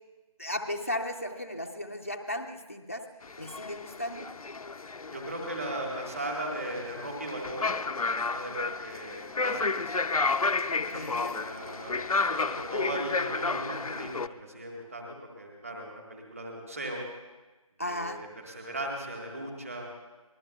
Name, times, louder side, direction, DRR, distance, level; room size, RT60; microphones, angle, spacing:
voice 1, 0.4-3.1 3.4-4.3 10.7-11.4 17.8-18.2, left 1 dB, 25° left, 2 dB, 0.6 m, -35 dB
sound 1, 3.2-14.3, left 4 dB, 75° left, 0.6 m, -32 dB
voice 2, 5.1-7.8 8.1-10.0 10.9-17.0 17.8-19.9, right 1 dB, 25° right, 0 dB, 1.6 m, -38 dB
24.5 x 20.0 x 2.3 m, 1.2 s
figure-of-eight pair, 175°, 19 cm